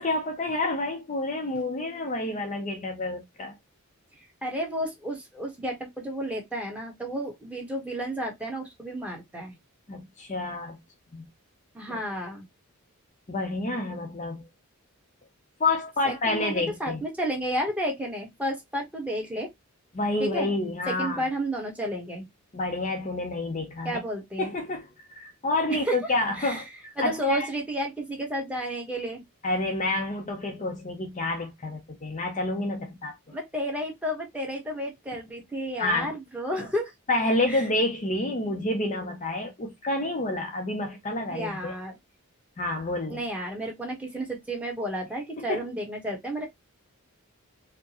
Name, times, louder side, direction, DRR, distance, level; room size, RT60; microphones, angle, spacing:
voice 1, 0.0-3.5 9.9-10.8 11.1-11.3 11.9-12.0 13.3-14.4 15.6-17.0 19.9-21.3 22.5-24.0 24.4-27.5 29.4-33.3 35.8-36.1 36.6-36.7 37.1-41.7 42.6-43.2 45.4-45.6, left 2 dB, 35° left, 0.6 m, -29 dB
voice 2, 4.4-9.5 11.7-12.4 16.0-19.5 20.2-20.5 20.9-22.3 23.8-24.5 25.7-25.9 26.4-26.6 27.0-29.2 33.3-36.9 37.5-37.6 41.3-42.0 43.1-46.4, equal, 5° right, 1.1 m, -32 dB
4.4 x 2.2 x 2.9 m
head